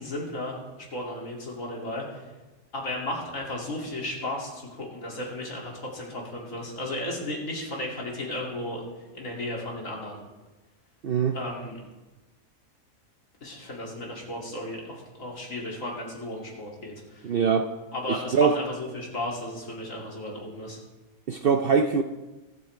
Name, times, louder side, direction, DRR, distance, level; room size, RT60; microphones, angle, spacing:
voice 1, 0.0-2.3 2.7-8.8 9.1-10.2 11.3-11.8 13.4-17.3 17.9-20.8, left 1 dB, 65° left, -2 dB, 3.0 m, -34 dB
voice 2, 11.0-11.4 17.2-17.7 18.1-18.6 21.3-22.0, right 6 dB, 55° right, 6 dB, 0.6 m, -22 dB
22.5 x 8.4 x 3.3 m, 1.1 s
omnidirectional pair, 1.5 m